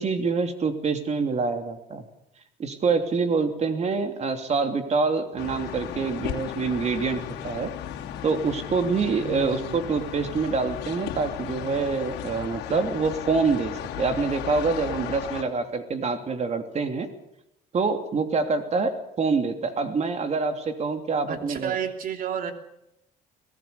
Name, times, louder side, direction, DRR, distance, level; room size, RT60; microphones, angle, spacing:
voice 1, 0.0-2.1 2.6-7.7 8.2-17.1 17.7-21.7, right 4 dB, 40° right, 7 dB, 3.0 m, -26 dB
sound 1, 5.4-15.4, left 11 dB, 80° left, 2.7 m, -35 dB
voice 2, 9.2-9.8 21.3-22.5, right 8 dB, 55° right, 6 dB, 3.0 m, -31 dB
23.0 x 17.5 x 6.9 m, 0.83 s
cardioid pair, 110°, 17 cm